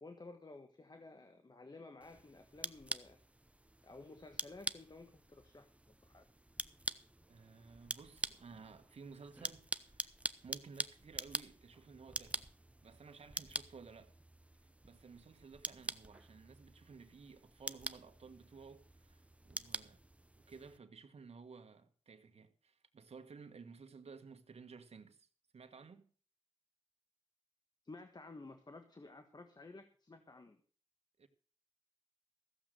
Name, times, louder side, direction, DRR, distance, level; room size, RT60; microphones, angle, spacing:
voice 1, 0.0-3.2 3.8-5.7 6.0-6.2 27.8-30.6, left 3 dB, 40° left, 1.4 m, -54 dB
sound 1, 2.0-20.8, right 1 dB, 10° right, 0.7 m, -46 dB
voice 2, 7.3-10.1 10.4-12.5 12.8-14.1 14.6-20.0 20.5-25.3 25.5-26.1 31.2-31.3, right 5 dB, 80° right, 1.5 m, -55 dB
15.0 x 7.6 x 6.6 m
cardioid pair, 60°, 11 cm